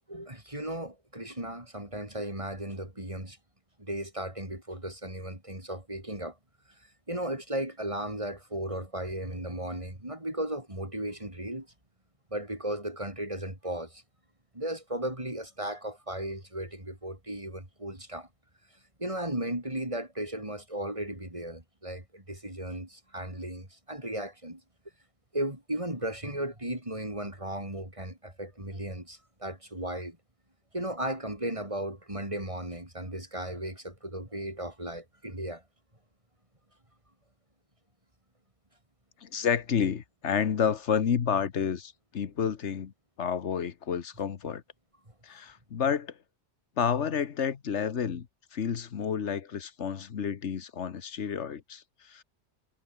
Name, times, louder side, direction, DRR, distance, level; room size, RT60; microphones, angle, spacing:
voice 1, 0.1-3.4 3.8-6.3 7.1-11.7 12.3-14.0 14.5-18.3 19.0-24.6 25.3-30.2 30.7-35.6, right 1 dB, 30° right, 5.0 m, -36 dB
voice 2, 39.2-42.9 43.2-44.6 45.2-46.2 46.8-48.3 48.5-52.2, left 7 dB, 90° left, 1.5 m, -30 dB
omnidirectional pair, 1.2 m